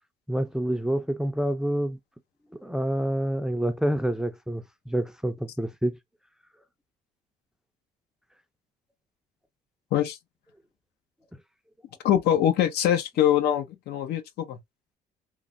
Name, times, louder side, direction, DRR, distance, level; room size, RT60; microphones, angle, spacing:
voice 1, 0.3-2.0 2.6-6.0, right 1 dB, 5° right, 0.4 m, -27 dB
voice 2, 12.0-14.6, left 10 dB, 75° left, 0.6 m, -23 dB
3.2 x 2.1 x 2.4 m
cardioid pair, 110°, 17 cm